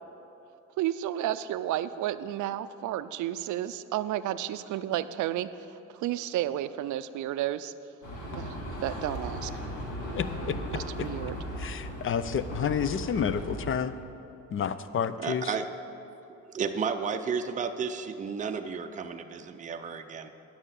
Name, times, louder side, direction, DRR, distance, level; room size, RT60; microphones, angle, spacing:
voice 1, 0.8-7.7 8.4-8.6 8.8-9.7 10.7-11.4, right 12 dB, 75° right, 13 dB, 0.5 m, -32 dB
sound 1, 8.0-13.7, equal, 85° left, 1.9 m, -37 dB
voice 2, 10.1-10.6 11.0-11.1 11.6-13.9 14.5-15.5, left 7 dB, 45° left, 13 dB, 0.5 m, -30 dB
voice 3, 15.2-15.7 16.3-20.3, right 6 dB, 25° right, 6 dB, 0.5 m, -33 dB
9.9 x 5.7 x 8.2 m, 2.8 s
cardioid pair, 90°, 30 cm